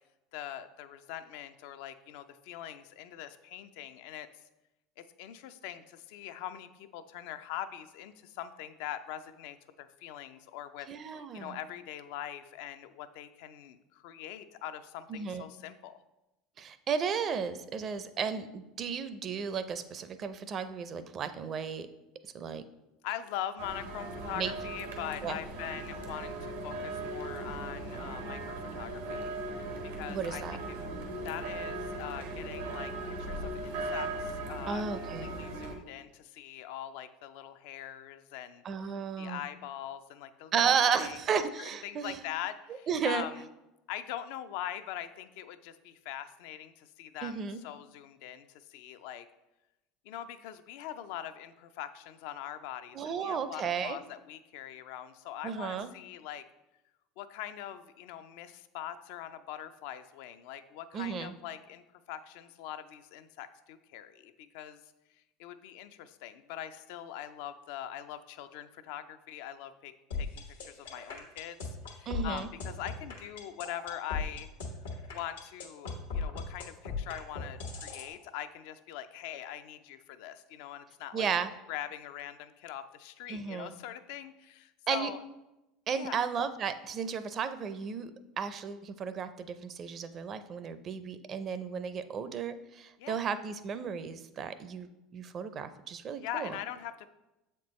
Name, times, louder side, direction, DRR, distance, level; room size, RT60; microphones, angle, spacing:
voice 1, 0.3-4.3 5.0-16.0 23.0-29.3 29.8-30.9 31.2-34.8 35.2-41.2 41.6-43.4 43.9-49.3 50.0-56.4 57.2-64.8 65.4-74.5 75.1-81.3 81.7-85.2 85.9-86.2 93.0-93.2 96.2-97.1, left 11 dB, 70° left, 11 dB, 0.4 m, -42 dB
voice 2, 10.9-11.6 15.1-15.4 16.6-21.9 22.3-22.6 24.4-24.5 25.2-25.4 30.1-30.6 34.7-35.3 38.6-39.4 40.5-42.2 42.9-43.2 47.2-47.6 52.9-54.0 55.4-55.9 60.9-61.3 72.1-72.5 81.1-81.5 83.3-83.7 84.9-85.1 85.9-88.1 88.4-96.6, right 6 dB, 40° right, 12 dB, 0.5 m, -33 dB
sound 1, 23.6-35.8, right 2 dB, 90° right, 1.0 m, -38 dB
sound 2, 70.1-78.1, left 4 dB, 90° left, 1.1 m, -37 dB
7.2 x 4.4 x 3.1 m, 0.97 s
hypercardioid pair, 80°, 0 cm